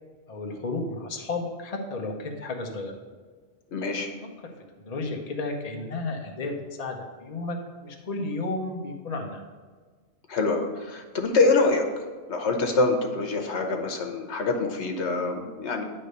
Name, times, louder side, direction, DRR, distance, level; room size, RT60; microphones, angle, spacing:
voice 1, 0.3-2.9 4.8-9.4, left 2 dB, 35° left, 1 dB, 1.0 m, -32 dB
voice 2, 3.7-4.1 10.3-11.9 12.3-15.8, left 3 dB, 80° left, 3 dB, 1.2 m, -25 dB
9.8 x 3.3 x 6.6 m, 1.5 s
omnidirectional pair, 1.1 m